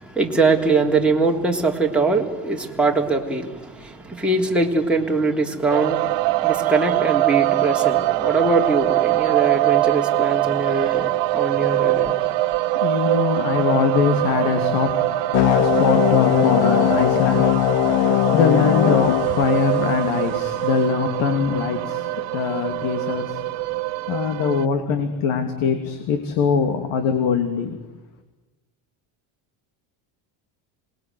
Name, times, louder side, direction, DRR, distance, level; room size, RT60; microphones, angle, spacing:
voice 1, 0.0-12.2, right 3 dB, ahead, 3.5 m, -22 dB
sound 1, 5.7-24.7, right 18 dB, 60° right, 1.0 m, -23 dB
voice 2, 11.5-23.8 24.1-27.8, left 6 dB, 85° left, 3.2 m, -23 dB
sound 2, 15.3-20.3, left 15 dB, 65° left, 1.0 m, -20 dB
27.0 x 21.5 x 9.5 m
cardioid pair, 150°, 48 cm